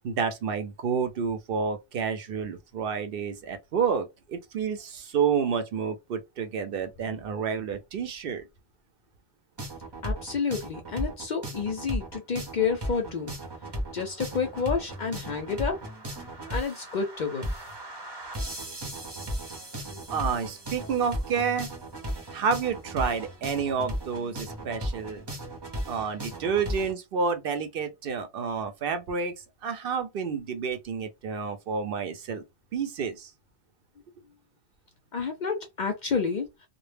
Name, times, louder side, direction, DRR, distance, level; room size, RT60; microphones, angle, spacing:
voice 1, 0.0-8.4 20.1-21.7 22.3-25.2 25.9-29.3 29.6-32.4 32.7-33.3, right 6 dB, 65° right, 0.7 m, -29 dB
sound 1, 9.6-26.9, equal, 25° right, 0.6 m, -36 dB
voice 2, 10.0-13.3 13.9-15.9 16.5-17.5 35.1-36.5, left 5 dB, 55° left, 0.5 m, -29 dB
2.1 x 2.0 x 3.2 m
omnidirectional pair, 1.1 m